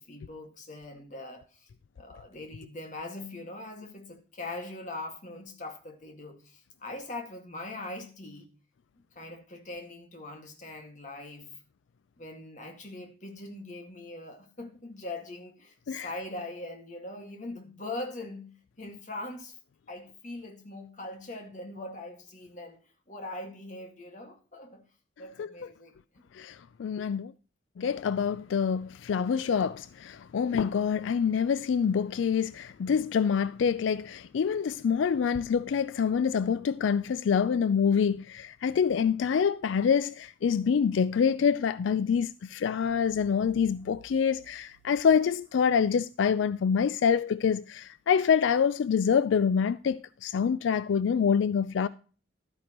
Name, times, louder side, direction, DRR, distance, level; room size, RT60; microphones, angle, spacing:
voice 1, 0.0-1.7 2.0-8.5 9.1-11.6 12.2-19.6 19.9-22.8 23.1-24.9 25.2-26.2, left 2 dB, 40° left, 1.9 m, -41 dB
voice 2, 26.3-27.3 27.8-51.9, left 7 dB, 80° left, 0.3 m, -26 dB
sound 1, 42.9-45.7, right 1 dB, 30° right, 1.1 m, -57 dB
12.5 x 9.5 x 3.0 m
head